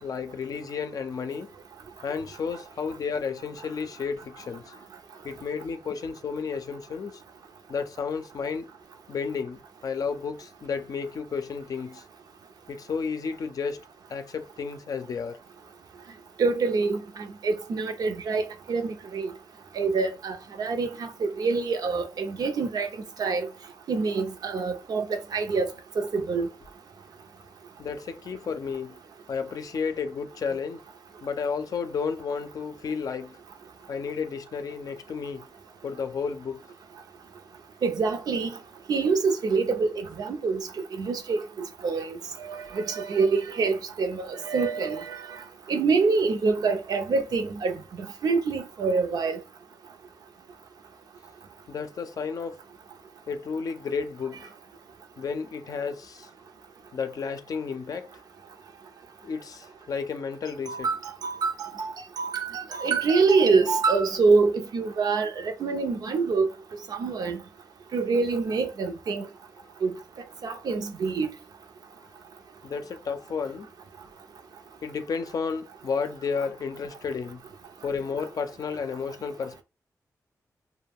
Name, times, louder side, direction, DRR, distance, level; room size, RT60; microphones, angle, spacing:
voice 1, 0.0-1.5 2.0-4.8 5.2-7.2 7.7-8.7 9.1-12.0 12.7-13.8 14.1-15.4 27.8-29.0 29.3-30.8 31.2-33.4 33.9-35.4 35.8-36.6 51.7-52.6 53.3-54.5 55.2-56.3 56.9-58.1 59.2-60.9 72.6-73.7 74.8-77.4 77.8-79.6, left 5 dB, 60° left, 0.5 m, -32 dB
voice 2, 16.4-19.3 19.8-22.9 23.2-23.5 23.9-25.7 26.0-26.5 37.8-38.6 38.9-40.6 41.0-41.4 41.8-45.2 45.7-47.7 48.2-49.4 60.7-66.5 66.9-67.4 67.9-69.3 69.8-69.9 70.4-71.3, right 4 dB, 75° right, 0.5 m, -26 dB
2.3 x 2.2 x 3.4 m
cardioid pair, 50°, 7 cm